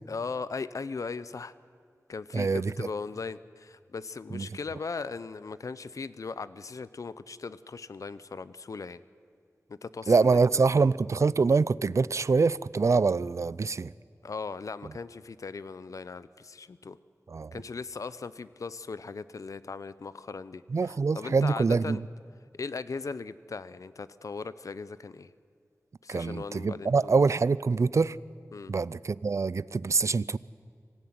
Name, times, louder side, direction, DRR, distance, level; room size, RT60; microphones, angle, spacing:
voice 1, 0.1-1.5 2.1-9.0 9.7-10.6 14.2-17.0 17.5-22.0 22.6-25.3 26.0-27.2 28.5-28.7, left 4 dB, 70° left, 16 dB, 0.7 m, -38 dB
voice 2, 2.3-2.9 4.3-4.5 10.1-13.9 17.3-17.5 20.7-22.0 26.1-28.2 28.7-30.4, right 4 dB, 60° right, 19 dB, 0.5 m, -25 dB
25.0 x 16.0 x 9.4 m, 2.3 s
wide cardioid pair, 80°, 6 cm